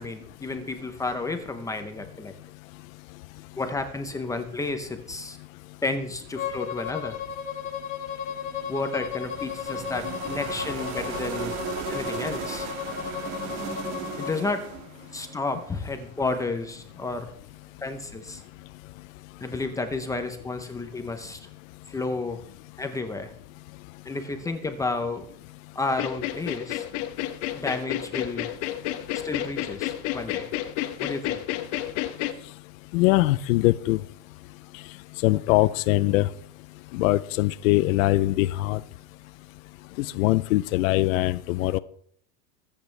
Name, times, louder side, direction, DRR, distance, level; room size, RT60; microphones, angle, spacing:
voice 1, 0.0-2.3 3.5-5.4 5.8-7.2 8.7-11.6 11.9-12.7 14.2-14.7 15.1-17.3 17.8-18.4 19.4-21.4 21.9-22.4 22.8-23.3 24.0-25.3 25.7-26.8 27.5-28.5 29.2-30.5 31.0-31.4, left 3 dB, 5° left, 7 dB, 0.6 m, -31 dB
Bowed string instrument, 6.3-14.4, left 8 dB, 30° left, 1.9 m, -35 dB
sound 1, 8.3-16.4, right 6 dB, 35° right, 2.1 m, -37 dB
sound 2, 25.9-32.3, left 13 dB, 45° left, 1.0 m, -30 dB
voice 2, 32.9-34.0 35.2-36.3 36.9-38.8 40.0-41.8, left 18 dB, 65° left, 13 dB, 0.6 m, -22 dB
24.5 x 8.7 x 3.3 m, 0.63 s
supercardioid pair, 155°, 44 cm